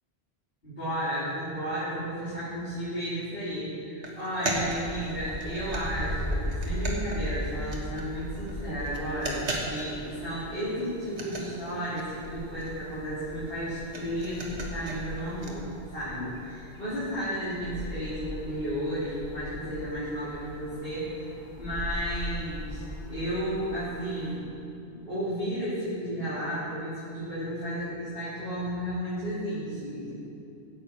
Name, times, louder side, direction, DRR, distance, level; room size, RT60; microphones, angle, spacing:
voice 1, 0.6-15.7 15.9-21.2 21.6-22.8 23.1-24.5 24.9-30.2, equal, 60° left, -15 dB, 4.1 m, -33 dB
sound 1, 4.0-8.2 8.5-8.6 8.9-10.2 10.5-10.6 10.8-15.5, right 2 dB, 90° right, 1.9 m, -37 dB
sound 2, 4.5-24.4, equal, 45° left, 2.4 m, -39 dB
16.0 x 9.8 x 4.6 m, 2.7 s
omnidirectional pair, 1.1 m